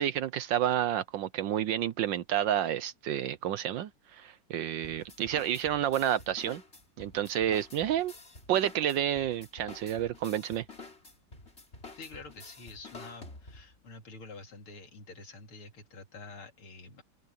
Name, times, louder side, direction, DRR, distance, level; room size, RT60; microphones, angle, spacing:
voice 1, 0.0-6.6 7.0-8.1 8.5-10.6, right 11 dB, 70° right, 1.2 m, -30 dB
sound 1, 4.8-13.8, left 3 dB, 30° left, 3.6 m, -49 dB
voice 2, 12.0-17.0, left 3 dB, 75° left, 3.7 m, -48 dB
open air
omnidirectional pair, 2.4 m